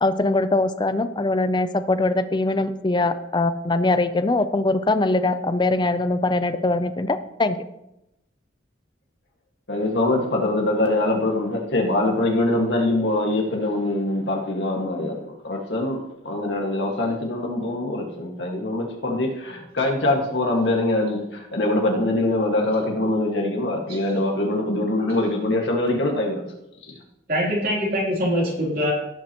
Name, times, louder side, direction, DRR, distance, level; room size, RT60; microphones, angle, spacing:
voice 1, 0.0-7.6, left 2 dB, 25° left, 0.5 m, -22 dB
voice 2, 9.7-16.0 16.3-26.4, left 2 dB, 75° left, 1.8 m, -23 dB
voice 3, 27.3-28.9, equal, 50° right, 3.1 m, -23 dB
17.5 x 7.5 x 3.0 m
head